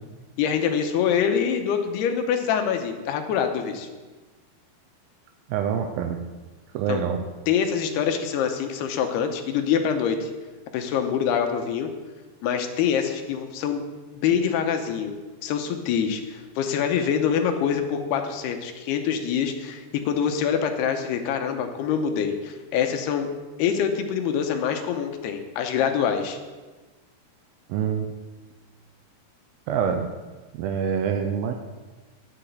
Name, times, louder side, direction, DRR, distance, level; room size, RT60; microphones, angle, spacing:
voice 1, 0.4-3.9 6.9-7.0 7.5-10.3 10.7-11.9 12.4-13.8 14.2-23.3 23.6-26.4, left 7 dB, 80° left, 5 dB, 2.8 m, -25 dB
voice 2, 5.5-6.2 6.7-7.2 27.7-28.1 29.7-30.1 30.6-31.5, right 7 dB, 80° right, 5 dB, 2.2 m, -25 dB
10.5 x 5.9 x 8.2 m, 1.2 s
omnidirectional pair, 4.8 m